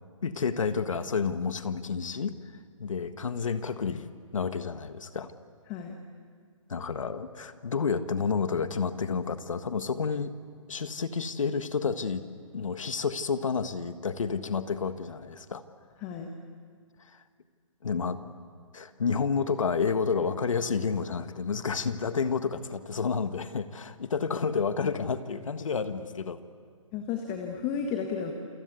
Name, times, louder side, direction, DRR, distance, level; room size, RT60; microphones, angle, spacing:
voice 1, 0.2-2.3 2.8-5.3 6.7-10.3 10.7-12.2 12.5-15.6 17.1-17.2 17.8-18.2 18.7-26.4, left 5 dB, 70° left, 10 dB, 1.7 m, -30 dB
voice 2, 26.9-28.3, left 7 dB, 20° left, 4 dB, 1.6 m, -32 dB
28.5 x 23.5 x 8.4 m, 2.1 s
hypercardioid pair, 155°, 17 cm